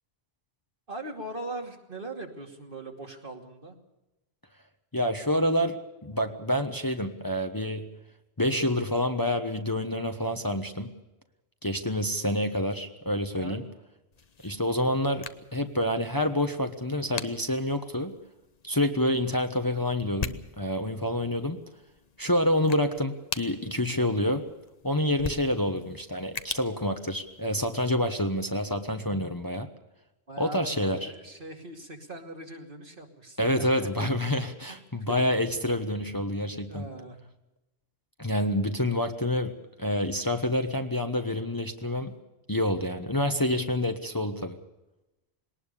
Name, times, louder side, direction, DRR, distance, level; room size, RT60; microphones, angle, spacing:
voice 1, 0.9-3.7 13.3-13.6 30.3-34.1 34.7-35.3 36.7-37.2, right 2 dB, 55° right, 2 dB, 2.9 m, -40 dB
voice 2, 4.9-7.9 8.4-10.9 11.6-13.6 14.4-18.1 18.6-21.6 22.2-24.4 24.8-29.7 30.4-31.1 33.4-36.9 38.2-42.1 42.5-44.6, left 1 dB, 20° left, 6 dB, 1.2 m, -28 dB
sound 1, 14.1-27.8, left 5 dB, 40° left, 1.0 m, -43 dB
20.5 x 19.0 x 6.8 m, 0.98 s
omnidirectional pair, 1.1 m